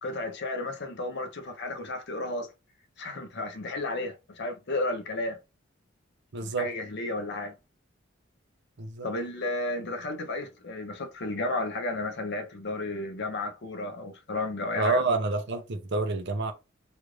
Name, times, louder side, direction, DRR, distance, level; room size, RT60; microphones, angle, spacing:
voice 1, 0.0-2.5 3.0-5.4 6.4-7.5 9.0-15.0, left 2 dB, 60° left, 0.8 m, -33 dB
voice 2, 6.3-6.7 8.8-9.1 14.8-16.5, right 3 dB, 60° right, 0.6 m, -28 dB
3.3 x 2.5 x 3.1 m
head